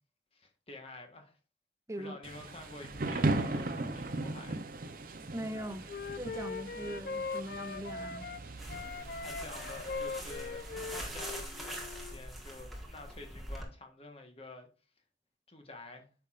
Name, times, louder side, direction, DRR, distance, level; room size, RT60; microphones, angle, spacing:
voice 1, 0.3-1.4 2.0-4.6 9.2-14.7 15.5-16.1, left 2 dB, 30° left, 1.2 m, -49 dB
Thunder / Rain, 2.2-11.2, right 2 dB, 50° right, 0.7 m, -38 dB
voice 2, 5.3-5.9 6.2-8.3, right 1 dB, 15° right, 0.5 m, -41 dB
Wind instrument woodwind instrument, 5.5-8.4 8.7-12.2, left 4 dB, 50° left, 0.4 m, -41 dB
sound 1, 8.6-13.6, right 1 dB, ahead, 1.4 m, -43 dB
8.7 x 5.9 x 2.5 m
head